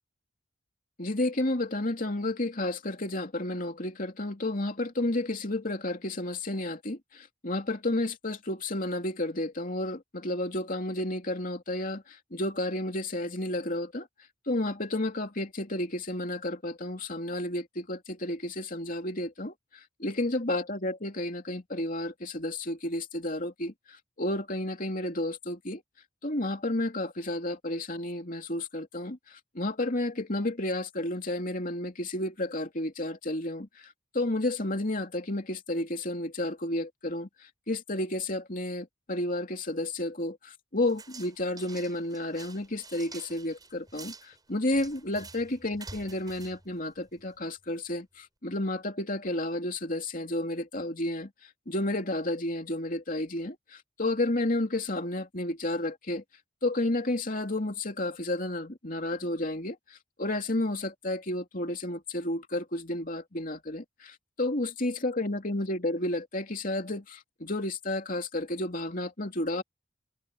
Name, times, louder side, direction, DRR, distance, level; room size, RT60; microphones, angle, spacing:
voice 1, 1.0-14.1 14.5-25.8 26.2-37.3 37.7-51.3 51.7-56.2 56.6-59.8 60.2-69.6, left 1 dB, 45° left, 2.9 m, -31 dB
sound 1, 40.9-47.4, right 4 dB, 20° right, 5.8 m, -49 dB
head